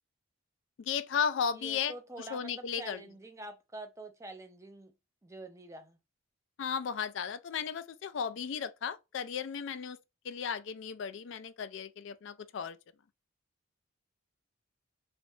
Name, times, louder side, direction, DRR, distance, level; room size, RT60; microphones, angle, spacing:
voice 1, 0.8-3.0 6.6-10.0 10.2-12.8, left 7 dB, 60° left, 0.3 m, -35 dB
voice 2, 1.5-4.9 5.2-6.0, right 2 dB, 15° right, 0.4 m, -46 dB
3.3 x 3.0 x 2.7 m
head